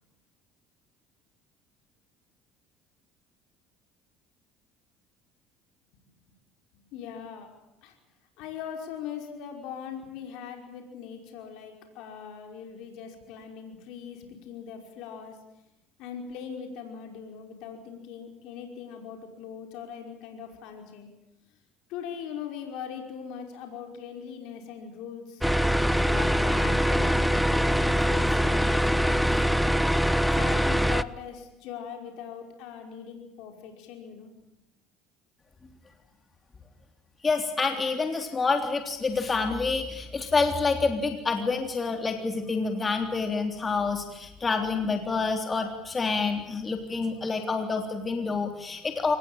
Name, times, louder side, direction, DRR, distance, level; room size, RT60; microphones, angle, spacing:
voice 1, 6.9-7.5 7.8-7.9 8.4-15.4 16.0-21.1 21.9-25.5 26.0-29.7 30.3-34.3, left 7 dB, 75° left, 3 dB, 5.2 m, -40 dB
sound 1, 25.4-31.0, equal, ahead, 1.0 m, -23 dB
voice 2, 37.2-49.2, left 4 dB, 30° left, 5 dB, 3.4 m, -27 dB
24.5 x 20.0 x 9.0 m, 0.87 s
supercardioid pair, 80°, 0 cm